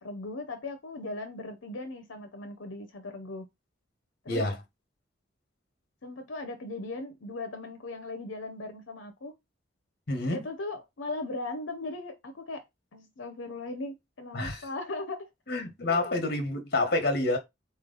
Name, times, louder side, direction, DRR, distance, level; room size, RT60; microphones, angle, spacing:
voice 1, 0.0-3.5 4.2-4.4 6.0-9.3 10.3-12.6 12.9-15.3 15.9-16.1, left 2 dB, 80° left, 0.7 m, -38 dB
voice 2, 4.3-4.6 10.1-10.5 14.3-14.6 15.5-17.4, left 2 dB, 55° left, 1.2 m, -28 dB
4.2 x 3.2 x 3.8 m
head